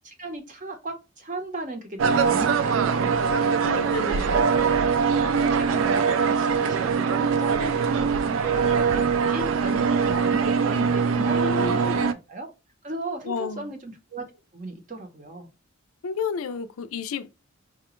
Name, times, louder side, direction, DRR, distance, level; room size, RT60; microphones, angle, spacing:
voice 1, 0.0-3.8 5.1-12.5 12.8-14.2 14.5-15.5, right 2 dB, 35° right, 0.7 m, -35 dB
sound 1, 2.0-12.1, right 6 dB, 65° right, 0.3 m, -22 dB
voice 2, 3.6-4.4 11.1-12.1 13.2-13.7 16.0-17.4, left 5 dB, 80° left, 0.4 m, -32 dB
4.8 x 2.1 x 3.0 m
head